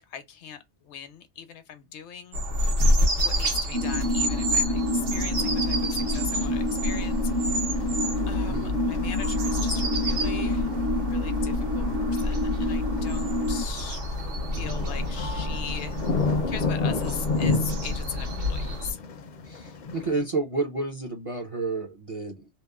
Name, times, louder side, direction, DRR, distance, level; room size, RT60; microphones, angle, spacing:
voice 1, 0.0-2.4 3.2-7.6 8.3-10.8 11.1-14.0 14.5-19.0, left 8 dB, 75° left, 0.9 m, -40 dB
sound 1, 2.3-18.9, equal, 90° right, 1.2 m, -28 dB
sound 2, 3.7-13.6, left 1 dB, 60° right, 0.9 m, -29 dB
sound 3, 5.3-20.2, left 3 dB, 55° left, 0.5 m, -33 dB
voice 2, 14.5-14.9 19.4-22.5, right 3 dB, 45° right, 0.5 m, -31 dB
2.9 x 2.0 x 2.2 m
omnidirectional pair, 1.2 m